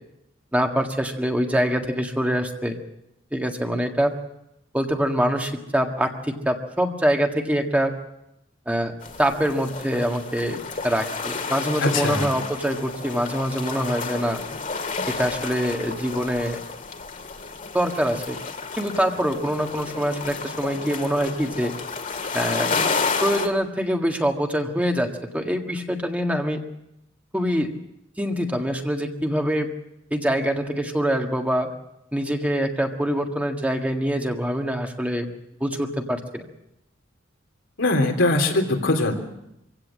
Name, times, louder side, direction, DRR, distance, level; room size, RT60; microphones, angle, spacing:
voice 1, 0.5-2.8 3.3-4.1 4.7-7.9 8.7-8.9 9.2-10.6 10.8-14.4 15.1-16.6 17.7-18.4 18.8-21.7 22.3-22.7 23.2-26.6 27.3-27.7 28.2-29.7 30.1-31.7 32.1-35.3 35.6-36.4, equal, 10° right, 3 dB, 1.8 m, -24 dB
sound 1, 9.0-23.5, left 4 dB, 45° left, 2.2 m, -31 dB
voice 2, 11.8-12.3 37.8-39.1, left 2 dB, 80° left, 2 dB, 3.5 m, -21 dB
25.0 x 16.5 x 7.6 m, 0.85 s
head